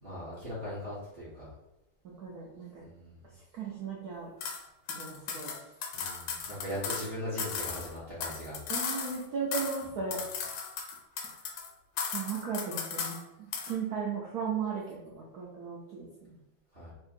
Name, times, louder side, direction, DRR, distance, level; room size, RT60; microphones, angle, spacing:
voice 1, 0.0-1.5 2.8-3.2 5.9-8.6 16.7-16.9, equal, 35° right, -9 dB, 1.1 m, -39 dB
voice 2, 2.0-2.8 3.3-4.3 4.9-5.6 8.7-10.2 12.1-16.4, right 6 dB, 70° right, -4 dB, 0.9 m, -36 dB
sound 1, 4.4-4.6 4.9-7.1 7.4-9.2 9.5-9.9 10.1-11.7 12.0-13.2 13.5-13.8, left 6 dB, 80° left, 1.5 m, -36 dB
4.5 x 3.8 x 2.6 m, 0.94 s
omnidirectional pair, 2.4 m